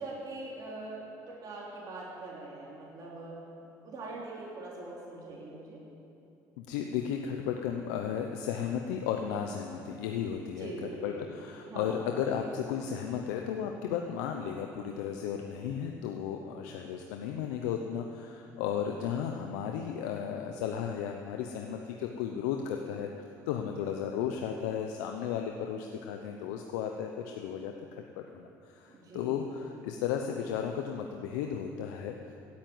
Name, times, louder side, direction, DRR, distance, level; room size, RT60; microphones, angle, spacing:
voice 1, 0.0-3.4 3.8-5.8 10.6-11.3 11.7-12.1 28.9-29.5, right 2 dB, 50° right, -5 dB, 3.5 m, -42 dB
voice 2, 6.6-32.1, left 8 dB, 85° left, 3 dB, 0.8 m, -34 dB
16.5 x 8.8 x 7.9 m, 2.7 s
supercardioid pair, 80°, 8 cm